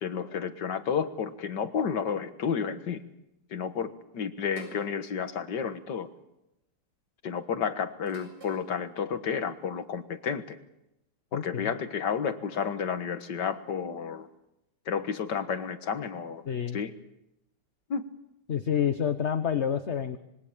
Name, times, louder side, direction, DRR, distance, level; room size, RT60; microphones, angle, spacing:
voice 1, 0.0-3.0 3.5-6.1 7.2-10.6 11.3-14.3 14.9-16.4 16.7-16.9 17.9-18.0, left 7 dB, 70° left, 10 dB, 2.1 m, -31 dB
sound 1, 4.6-4.9 6.1-6.4 8.1-8.7, right 1 dB, 70° right, 7.9 m, -50 dB
voice 2, 11.3-11.7 16.4-16.8 18.5-20.2, left 8 dB, 45° left, 9 dB, 1.3 m, -28 dB
26.5 x 22.5 x 7.3 m, 0.87 s
omnidirectional pair, 1.9 m